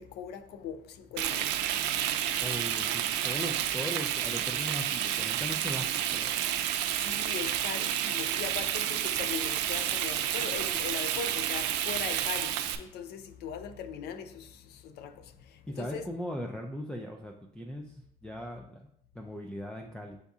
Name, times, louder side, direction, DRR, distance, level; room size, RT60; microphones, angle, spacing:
voice 1, 0.0-1.5 6.9-15.3 15.8-16.0, left 7 dB, 75° left, 0.5 m, -40 dB
Frying (food), 1.2-12.8, right 11 dB, 90° right, 0.4 m, -30 dB
voice 2, 2.4-6.4 15.7-18.9 19.1-20.2, equal, 5° left, 0.4 m, -39 dB
8.0 x 2.7 x 2.4 m
cardioid pair, 110°, 17 cm